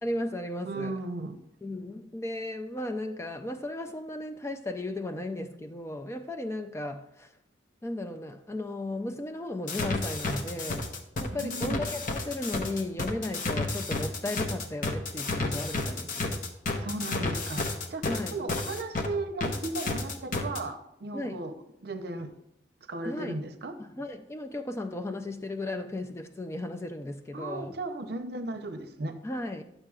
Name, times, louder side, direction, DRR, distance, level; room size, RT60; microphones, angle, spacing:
voice 1, 0.0-1.0 1.6-7.3 7.8-10.9 11.2-16.4 18.0-18.4 21.1-21.5 23.0-23.4 23.8-27.8 29.2-29.6, left 1 dB, 15° left, 0.4 m, -35 dB
voice 2, 0.6-1.4 11.3-11.8 16.8-21.5 21.8-22.3 22.9-23.7 27.3-29.1, right 2 dB, 60° right, 0.6 m, -36 dB
sound 1, 9.7-19.1 19.4-20.6, left 3 dB, 45° left, 0.8 m, -31 dB
11.0 x 6.6 x 2.4 m
head